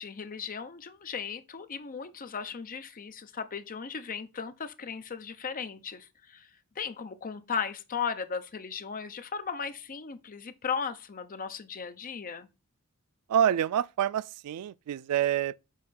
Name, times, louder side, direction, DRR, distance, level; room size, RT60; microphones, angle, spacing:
voice 1, 0.0-6.5 6.8-12.5, left 6 dB, 40° left, 0.6 m, -36 dB
voice 2, 13.3-15.7, right 9 dB, 90° right, 0.3 m, -27 dB
6.5 x 3.8 x 4.0 m
head